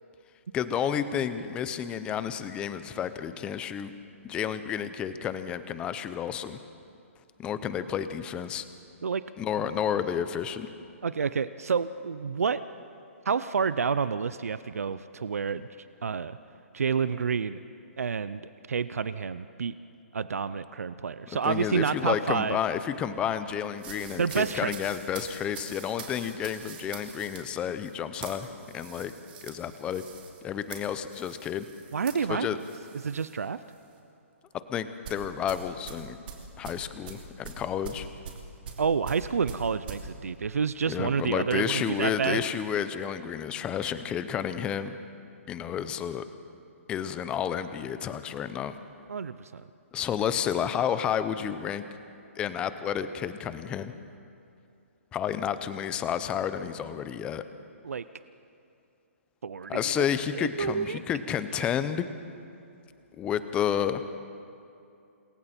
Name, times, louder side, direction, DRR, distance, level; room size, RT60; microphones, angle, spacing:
voice 1, 0.5-3.9 4.2-6.6 7.4-8.6 9.4-10.7 21.4-28.5 28.7-29.1 29.4-30.0 30.4-31.7 32.3-32.6 34.7-36.2 36.6-38.1 40.9-45.0 45.5-46.2 46.9-48.8 49.9-51.9 52.4-53.9 55.1-57.4 59.7-62.1 63.2-64.0, left 8 dB, 15° left, 12 dB, 0.6 m, -31 dB
voice 2, 11.0-12.6 13.3-15.7 16.0-16.4 16.7-17.6 18.0-18.4 18.7-19.8 20.1-22.6 24.2-24.7 31.9-32.5 33.0-33.6 38.8-42.4 49.1-49.6 57.8-58.0 59.4-60.0 60.3-61.0, right 6 dB, 90° right, 14 dB, 0.6 m, -29 dB
sound 1, 23.8-33.4 33.7-34.0 35.0-40.0, right 6 dB, 40° right, 3.0 m, -44 dB
27.5 x 22.5 x 4.4 m, 2.6 s
hypercardioid pair, 160°, 8 cm